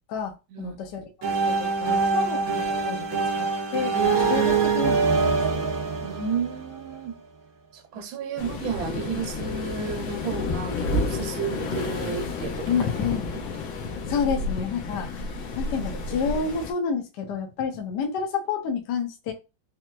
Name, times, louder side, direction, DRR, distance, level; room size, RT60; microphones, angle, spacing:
voice 1, 0.1-5.7 12.7-13.3 14.1-15.2 15.5-19.3, left 6 dB, 65° left, 1.2 m, -29 dB
sound 1, 1.2-7.0, right 4 dB, 55° right, 1.1 m, -24 dB
voice 2, 6.0-7.2 7.7-12.9 13.3-13.4, right 7 dB, 85° right, 1.4 m, -32 dB
Waves surf, 8.4-16.7, left 3 dB, 85° left, 1.6 m, -31 dB
4.3 x 2.0 x 2.2 m
omnidirectional pair, 2.1 m